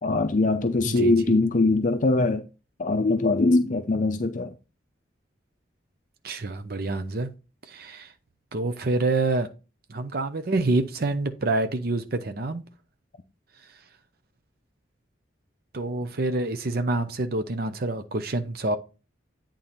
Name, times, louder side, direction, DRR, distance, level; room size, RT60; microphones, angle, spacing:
voice 1, 0.0-2.5 2.8-4.5, left 2 dB, 40° left, 0.5 m, -22 dB
voice 2, 0.8-1.4 6.2-7.3 7.6-8.1 8.5-9.5 9.9-12.6 15.7-18.8, right 2 dB, 50° right, 0.7 m, -27 dB
8.8 x 3.8 x 4.3 m
head